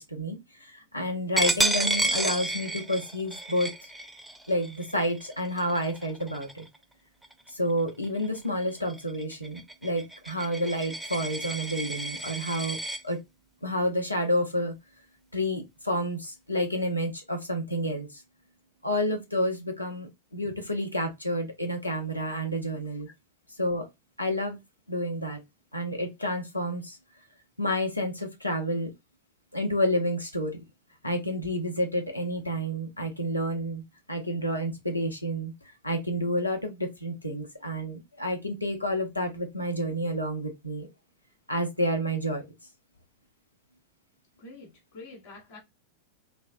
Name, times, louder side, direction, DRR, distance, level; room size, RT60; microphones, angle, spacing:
voice 1, 0.0-3.7 4.5-6.7 7.5-13.2 13.6-14.7 15.3-18.2 18.8-23.1 23.6-23.9 24.2-24.6 24.9-25.4 25.7-27.0 27.6-28.9 29.5-30.6 31.0-33.8 34.1-35.5 35.8-40.9 41.5-42.5, equal, 85° left, 0.7 m, -29 dB
Coin (dropping), 1.4-6.8 7.2-7.5 7.9-13.0, right 2 dB, 5° right, 0.4 m, -31 dB
voice 2, 44.4-45.6, left 3 dB, 50° left, 1.0 m, -46 dB
3.1 x 2.1 x 2.6 m
figure-of-eight pair, 90°, 0 cm